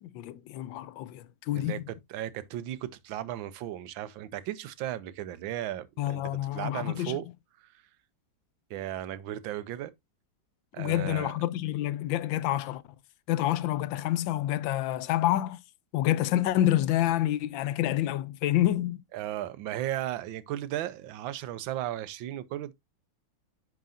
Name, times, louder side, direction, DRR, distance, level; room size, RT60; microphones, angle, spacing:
voice 1, 0.0-1.9 6.0-7.2 10.8-12.8 13.3-15.6 15.9-19.0, left 13 dB, 80° left, 1.3 m, -28 dB
voice 2, 1.5-7.3 7.6-7.8 8.7-9.9 10.7-11.4 19.1-22.7, right 13 dB, 90° right, 1.4 m, -36 dB
10.5 x 3.9 x 2.5 m
omnidirectional pair, 2.1 m